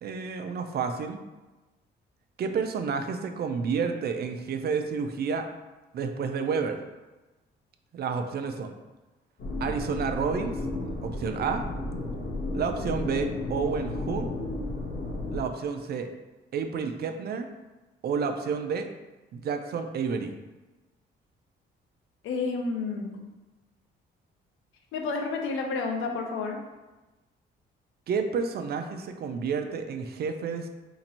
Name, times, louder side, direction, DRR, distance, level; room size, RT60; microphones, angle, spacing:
voice 1, 0.0-1.2 2.4-5.5 5.9-6.8 7.9-8.7 9.6-10.6 11.0-11.7 12.5-14.3 15.3-16.1 16.5-17.5 18.0-18.9 19.3-20.4 28.1-30.7, right 5 dB, 55° right, 6 dB, 0.4 m, -30 dB
sound 1, 9.4-15.4, left 2 dB, 60° left, 0.9 m, -33 dB
voice 2, 22.2-23.2 24.9-26.6, left 4 dB, 85° left, 2 dB, 0.6 m, -30 dB
2.9 x 2.6 x 4.1 m, 1.1 s
cardioid pair, 90°, 20 cm